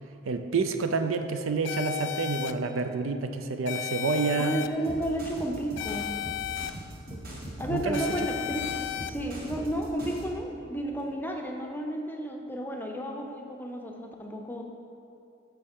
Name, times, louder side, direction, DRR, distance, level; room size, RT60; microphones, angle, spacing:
voice 1, 0.3-4.6 7.7-8.0, right 4 dB, 70° right, 7 dB, 0.5 m, -28 dB
sound 1, 1.7-2.5 3.7-4.7 5.8-6.7 7.9-9.1, left 13 dB, 60° left, 0.3 m, -34 dB
voice 2, 4.4-6.1 7.6-14.6, right 1 dB, 10° left, 1 dB, 0.6 m, -32 dB
sound 2, 4.8-10.3, right 1 dB, 45° right, 1.7 m, -40 dB
sound 3, 6.1-6.2 7.1-7.2 7.8-8.2 8.9-9.2 9.9-10.2 10.9-11.1, left 1 dB, 30° right, 1.7 m, -52 dB
13.0 x 5.5 x 3.6 m, 2.6 s
head